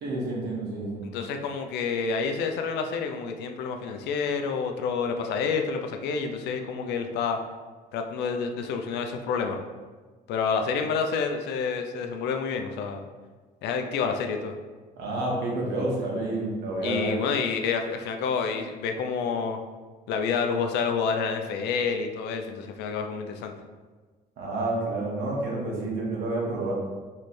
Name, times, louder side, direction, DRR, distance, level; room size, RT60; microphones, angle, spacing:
voice 1, 0.0-1.0 15.0-17.2 24.4-26.7, right 2 dB, 75° right, -3 dB, 1.3 m, -29 dB
voice 2, 1.1-7.4 7.9-9.6 10.3-13.0 13.6-14.5 16.8-19.6 20.1-23.5, left 5 dB, 80° left, 5 dB, 0.5 m, -28 dB
3.2 x 3.2 x 4.2 m, 1.4 s
cardioid pair, 110°, 17 cm